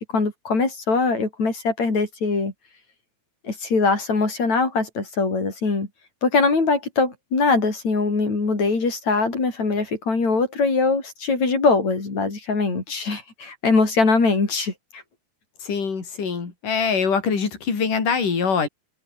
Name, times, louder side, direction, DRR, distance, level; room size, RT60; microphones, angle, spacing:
voice 1, 0.0-2.5 3.4-5.9 6.2-15.0, left 4 dB, 55° left, 7.7 m, -22 dB
voice 2, 15.6-18.7, left 5 dB, 75° left, 6.3 m, -23 dB
omnidirectional pair, 3.8 m